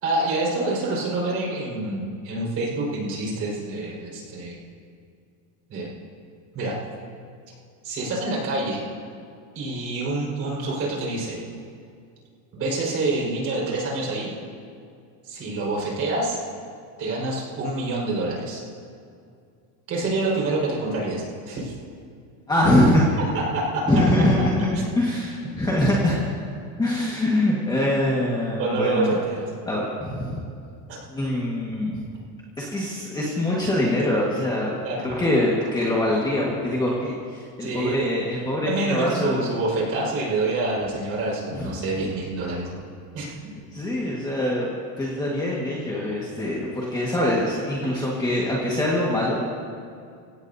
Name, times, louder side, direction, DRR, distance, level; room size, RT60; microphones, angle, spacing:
voice 1, 0.0-4.6 5.7-5.9 6.5-6.7 7.8-8.8 9.5-11.4 12.5-14.3 15.2-16.4 17.0-18.6 19.9-21.7 23.3-23.8 28.6-29.4 30.9-31.0 34.8-35.1 37.6-38.1 38.6-42.8 43.1-43.5, right 2 dB, 35° right, -4 dB, 5.0 m, -27 dB
voice 2, 22.5-23.1 23.9-26.2 26.8-29.2 29.7-30.4 31.1-32.0 32.6-34.7 35.0-39.5 41.5-41.7 43.7-44.7 45.0-49.5, left 1 dB, 10° left, -5 dB, 1.6 m, -23 dB
27.0 x 16.5 x 2.8 m, 2.4 s
cardioid pair, 175°, 42 cm